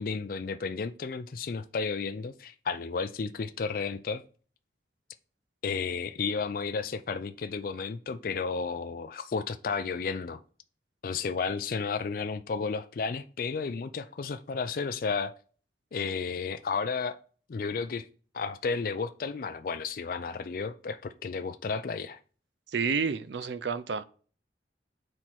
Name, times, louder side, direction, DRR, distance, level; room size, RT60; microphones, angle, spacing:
voice 1, 0.0-4.2 5.6-10.4 11.0-15.3 15.9-17.2 17.5-18.1 18.3-22.2, left 5 dB, 50° left, 0.4 m, -32 dB
voice 2, 22.7-24.0, right 5 dB, 80° right, 0.5 m, -30 dB
7.9 x 4.3 x 4.4 m
head